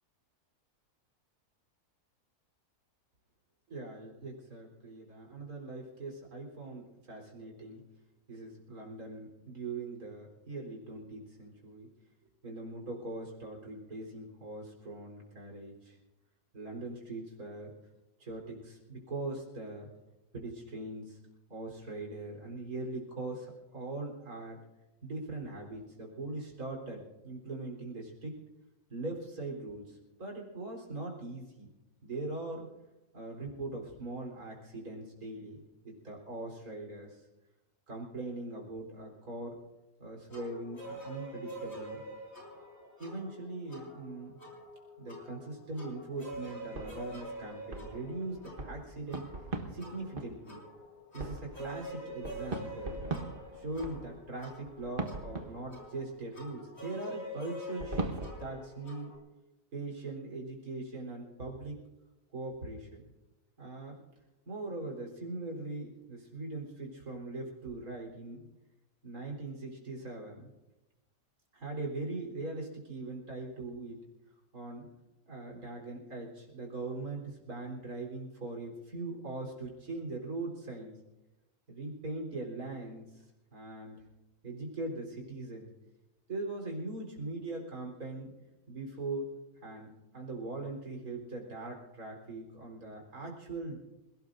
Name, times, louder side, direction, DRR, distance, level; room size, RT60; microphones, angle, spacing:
voice 1, 3.7-7.8 8.3-11.9 12.4-16.0 16.5-17.7 18.2-19.9 20.3-21.2 21.5-24.6 25.0-28.4 28.9-31.7 32.0-32.7 33.1-37.2 37.9-39.6 40.0-42.0 43.0-44.4 45.0-49.2 49.7-50.6 51.1-53.0 53.5-59.1 59.7-61.8 62.3-63.0 63.6-64.0 64.5-68.5 69.0-70.5 71.5-74.0 74.5-74.9 75.3-81.0 81.7-83.2 83.5-84.0 84.4-85.7 86.3-88.3 88.7-89.3 89.6-93.8, right 2 dB, 65° right, 0 dB, 4.4 m, -41 dB
sound 1, 40.3-59.2, equal, 45° left, 4.8 m, -46 dB
sound 2, 46.7-50.5 51.2-56.0 57.8-58.3, right 3 dB, 35° right, 1.4 m, -40 dB
27.5 x 17.5 x 2.6 m, 1.0 s
omnidirectional pair, 1.6 m